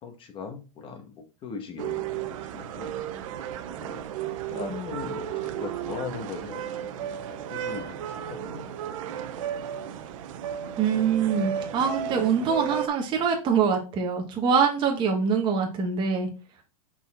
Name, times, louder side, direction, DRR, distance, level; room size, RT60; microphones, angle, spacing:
voice 1, 0.0-2.9 3.7-9.6, left 5 dB, 25° left, 5 dB, 1.3 m, -40 dB
sound 1, 1.8-12.9, right 9 dB, 60° right, 0.7 m, -34 dB
voice 2, 10.8-16.3, right 6 dB, 25° right, 1 dB, 1.3 m, -24 dB
5.4 x 4.3 x 4.2 m, 0.32 s
supercardioid pair, 145°, 19 cm